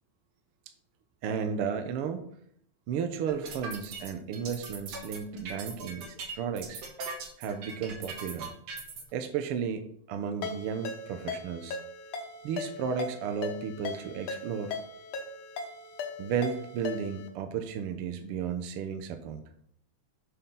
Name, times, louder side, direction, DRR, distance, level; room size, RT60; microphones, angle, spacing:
voice 1, 1.2-2.3 2.9-6.8 7.4-8.5 9.1-11.8 12.4-14.8 16.2-19.4, right 7 dB, 70° right, 7 dB, 1.4 m, -33 dB
sound 1, 3.3-9.0, right 4 dB, 85° right, 3.0 m, -40 dB
Ringtone, 10.4-17.3, left 4 dB, 65° left, 2.1 m, -39 dB
6.7 x 5.6 x 5.6 m, 0.67 s
omnidirectional pair, 3.3 m